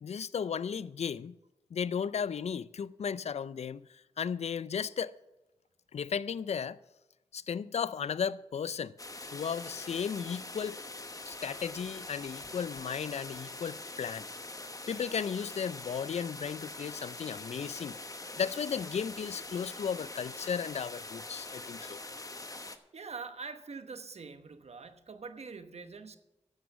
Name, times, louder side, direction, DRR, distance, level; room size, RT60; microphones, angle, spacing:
voice 1, 0.0-1.4 1.7-3.8 4.2-5.1 5.9-6.8 7.3-8.9 9.3-10.8 11.3-14.3 14.9-18.0 18.4-22.0, left 7 dB, 80° left, 0.4 m, -35 dB
sound 1, 9.0-22.8, left 2 dB, 30° left, 1.0 m, -44 dB
voice 2, 22.9-26.2, right 4 dB, 75° right, 1.0 m, -44 dB
11.0 x 8.1 x 7.0 m
cardioid pair, 45°, 11 cm